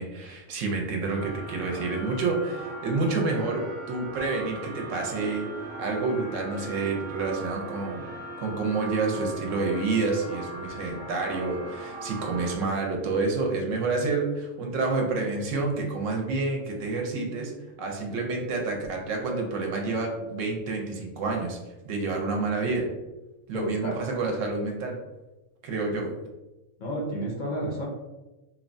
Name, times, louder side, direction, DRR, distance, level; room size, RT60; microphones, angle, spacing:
voice 1, 0.0-5.5 5.8-8.1 8.4-17.5 17.8-21.6 21.8-22.9 23.5-25.0 25.6-26.1, right 3 dB, 75° right, 1 dB, 0.9 m, -28 dB
sound 1, 1.1-12.6, right 2 dB, 50° right, 0.8 m, -39 dB
voice 2, 23.5-24.0 25.9-26.1 26.8-27.8, equal, 55° left, -2 dB, 0.6 m, -31 dB
2.9 x 2.1 x 2.5 m, 1.0 s
omnidirectional pair, 1.4 m